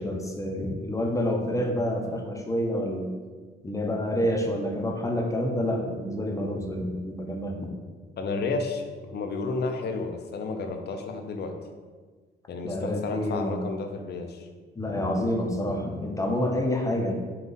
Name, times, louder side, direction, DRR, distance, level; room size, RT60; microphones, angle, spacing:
voice 1, 0.0-3.2 3.6-7.7 12.6-13.7 14.8-17.1, left 1 dB, 15° left, 1 dB, 0.7 m, -28 dB
voice 2, 8.2-11.5 12.5-14.5, left 3 dB, 55° left, 5 dB, 0.6 m, -32 dB
5.4 x 2.4 x 3.9 m, 1.4 s
cardioid pair, 90°, 20 cm